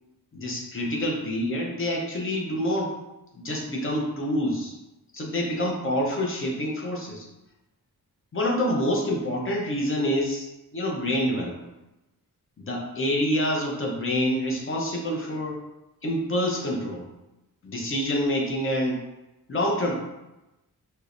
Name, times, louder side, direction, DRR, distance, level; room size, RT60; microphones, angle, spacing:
voice 1, 0.3-2.9 3.3-4.7 5.1-7.3 8.3-10.5 10.7-11.5 12.6-15.6 16.0-17.0 17.6-19.0 19.5-20.0, equal, 35° left, -1 dB, 0.6 m, -27 dB
4.3 x 2.1 x 2.5 m, 0.98 s
wide cardioid pair, 180°, 37 cm